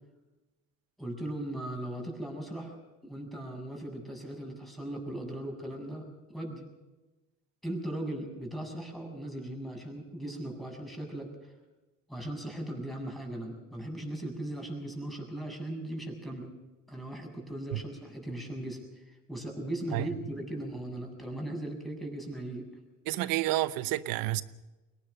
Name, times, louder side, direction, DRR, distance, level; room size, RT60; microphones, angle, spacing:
voice 1, 1.0-2.8 3.0-6.6 7.6-11.5 12.1-16.5 16.9-22.7, right 1 dB, ahead, 7.4 m, -38 dB
voice 2, 23.1-24.4, right 16 dB, 90° right, 0.9 m, -29 dB
22.0 x 18.5 x 6.7 m
supercardioid pair, 80°, 33 cm